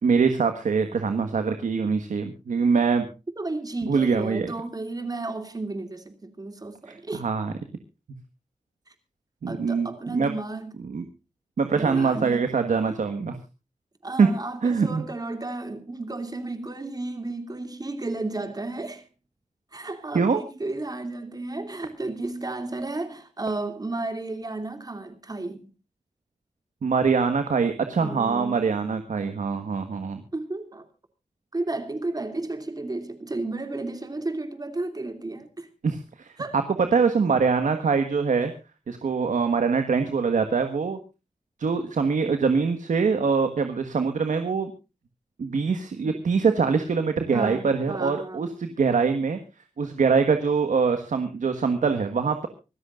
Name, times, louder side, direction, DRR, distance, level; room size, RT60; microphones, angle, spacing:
voice 1, 0.0-3.1 3.8-4.5 6.9-7.5 9.4-10.3 10.9-11.0 11.6-13.3 14.2-14.3 14.6-15.0 20.1-20.4 26.8-30.2 35.8-36.3 36.9-38.5 38.9-41.0 41.6-44.7 45.4-49.4 49.8-52.5, right 5 dB, 85° right, 1.5 m, -23 dB
voice 2, 3.4-7.3 9.5-10.7 11.7-12.5 14.0-19.0 19.7-25.7 28.0-28.7 30.3-30.9 31.5-35.7 36.4-36.5 47.3-48.5, right 2 dB, 30° right, 2.7 m, -33 dB
25.5 x 13.5 x 2.5 m
wide cardioid pair, 110°, 13 cm